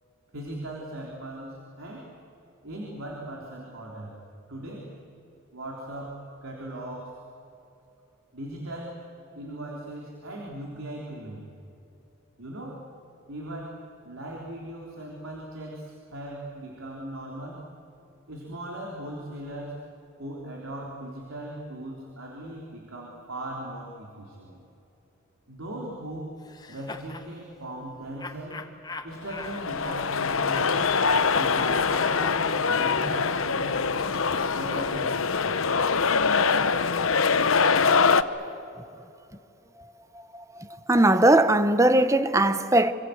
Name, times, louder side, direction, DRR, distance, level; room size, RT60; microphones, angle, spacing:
voice 1, 0.3-2.1 2.6-4.2 4.5-4.9 5.5-7.2 8.3-9.0 9.3-11.5 12.4-12.9 13.3-17.6 18.3-19.8 20.2-24.6 25.5-26.3 26.7-28.7 29.0-30.9 31.3-34.2 34.5-35.7, right 1 dB, 85° right, 3.7 m, -38 dB
sound 1, 26.4-27.3 28.2-31.0 31.3-35.2, left 3 dB, 20° left, 1.2 m, -42 dB
sound 2, 29.2-38.2, left 5 dB, 80° left, 0.9 m, -23 dB
voice 2, 40.3-42.9, right 1 dB, 15° right, 0.9 m, -20 dB
26.0 x 26.0 x 7.9 m
head